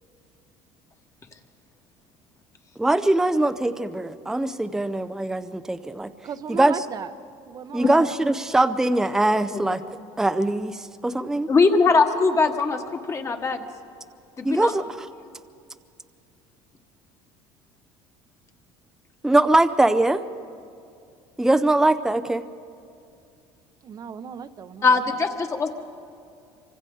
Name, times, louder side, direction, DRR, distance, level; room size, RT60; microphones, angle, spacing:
voice 1, 2.8-6.1 6.5-6.7 7.7-9.8 10.2-11.5 14.4-15.1 19.2-20.2 21.4-22.4, right 2 dB, 5° right, 10 dB, 0.5 m, -22 dB
voice 2, 6.2-7.1 7.5-8.2 23.8-25.0, right 7 dB, 35° right, 12 dB, 0.8 m, -36 dB
voice 3, 11.5-13.6 14.4-14.7 24.8-25.7, left 4 dB, 25° left, 5 dB, 1.4 m, -21 dB
27.0 x 25.0 x 3.9 m, 2.5 s
cardioid pair, 135°, 11 cm